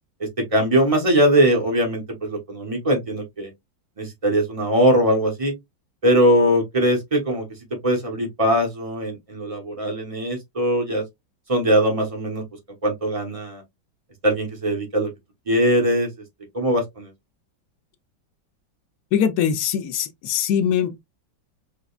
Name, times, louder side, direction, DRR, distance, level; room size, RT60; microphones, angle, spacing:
voice 1, 0.2-3.5 4.0-5.5 6.0-7.5 7.8-11.0 11.5-12.4 12.8-13.6 14.2-15.1 15.5-16.1 16.5-17.1, equal, 30° right, 0.6 m, -21 dB
voice 2, 19.1-21.0, left 8 dB, 70° left, 1.0 m, -22 dB
4.8 x 2.3 x 2.3 m
omnidirectional pair, 2.1 m